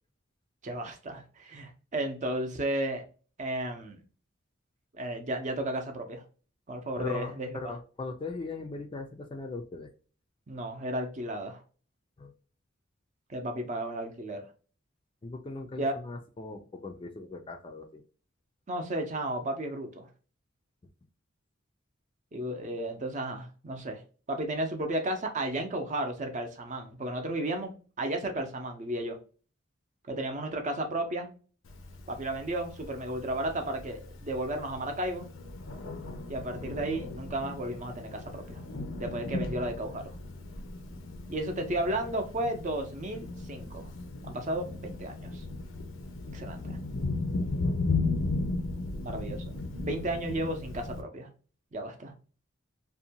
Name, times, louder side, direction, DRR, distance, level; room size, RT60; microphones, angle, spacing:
voice 1, 0.6-3.0 3.4-4.0 4.9-6.2 6.7-7.5 10.5-11.6 13.3-14.4 15.8-15.9 18.7-20.1 22.3-24.0 24.3-27.7 28.0-29.2 30.1-31.3 32.1-35.3 36.3-38.6 39.0-40.1 41.3-43.9 44.2-45.4 46.3-46.8 49.0-51.3 51.7-52.1, right 1 dB, 40° right, 0.6 m, -33 dB
voice 2, 7.0-9.9 12.2-12.3 15.2-18.0 40.9-41.4, left 3 dB, 25° left, 0.4 m, -39 dB
Thunder, 31.7-51.0, left 3 dB, 75° left, 0.5 m, -36 dB
2.6 x 2.2 x 2.7 m
head